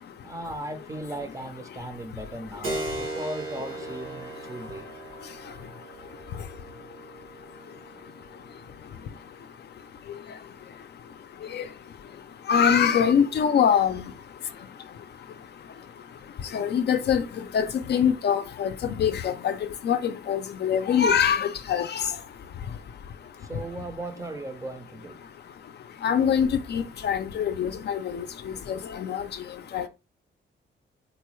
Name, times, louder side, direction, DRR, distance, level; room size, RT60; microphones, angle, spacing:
voice 1, 0.2-5.0 23.4-25.2, right 1 dB, 15° right, 0.5 m, -37 dB
Keyboard (musical), 2.6-10.8, right 2 dB, 85° right, 1.2 m, -39 dB
voice 2, 12.5-14.0 16.5-17.2 17.5-19.5 19.8-22.1 26.0-28.2 28.7-29.2 29.7-29.9, left 8 dB, 55° left, 0.4 m, -23 dB
3.9 x 2.2 x 3.0 m
wide cardioid pair, 135°, 20 cm